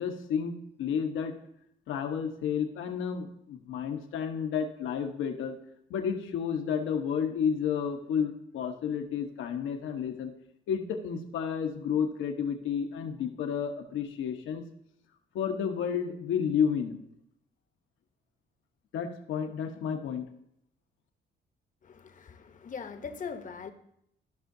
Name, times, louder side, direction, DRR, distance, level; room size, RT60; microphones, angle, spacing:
voice 1, 0.0-1.3 1.9-5.5 5.9-10.3 10.7-14.6 15.3-17.0 18.9-20.2, left 7 dB, 80° left, 5 dB, 1.0 m, -31 dB
voice 2, 21.8-23.7, left 5 dB, 40° left, 8 dB, 0.8 m, -41 dB
14.5 x 5.7 x 2.6 m, 0.74 s
cardioid pair, 90°, 20 cm